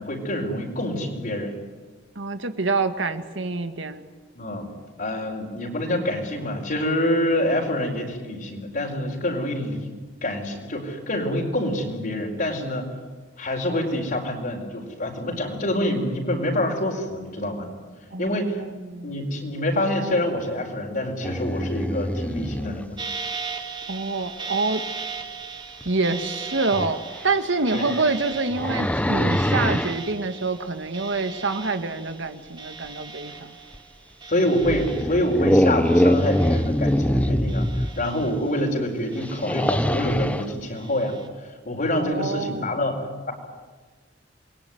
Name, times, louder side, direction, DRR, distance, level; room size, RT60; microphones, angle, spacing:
voice 1, 0.0-1.5 4.3-4.7 5.0-9.9 10.2-12.9 13.4-17.7 18.2-18.6 19.0-23.0 27.7-27.8 34.2-42.9, left 1 dB, 50° left, -3 dB, 4.7 m, -26 dB
voice 2, 2.2-4.0 18.1-19.2 23.9-24.8 25.8-27.0 27.2-33.5 41.9-42.7, right 3 dB, 80° right, 8 dB, 2.0 m, -26 dB
sound 1, 21.2-22.9 25.8-25.9 26.7-26.9 27.6-30.0 33.7-33.8 34.6-38.1 39.2-40.5, equal, 10° left, 1.0 m, -23 dB
sound 2, 23.0-35.6 35.8-37.1 37.5-38.7 39.1-40.2 40.8-41.3, right 5 dB, 25° right, 2.3 m, -38 dB
28.5 x 21.5 x 9.5 m, 1.4 s
head